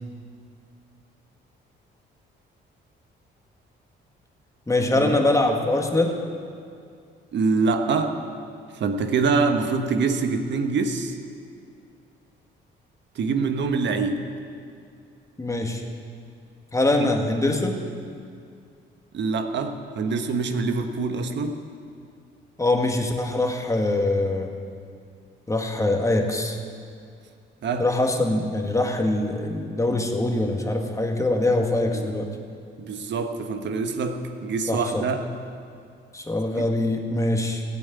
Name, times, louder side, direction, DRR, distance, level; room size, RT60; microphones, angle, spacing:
voice 1, 4.7-6.1 15.4-15.8 16.7-17.8 22.6-24.5 25.5-26.6 27.8-32.3 34.7-35.0 36.1-37.6, left 2 dB, 15° left, 3 dB, 1.9 m, -23 dB
voice 2, 7.3-8.2 8.7-11.2 13.1-14.2 17.0-17.1 19.1-21.6 27.6-27.9 31.9-32.0 32.8-35.2 36.6-36.7, right 4 dB, 65° right, 6 dB, 1.3 m, -25 dB
15.5 x 8.8 x 9.3 m, 2.3 s
cardioid pair, 90°, 20 cm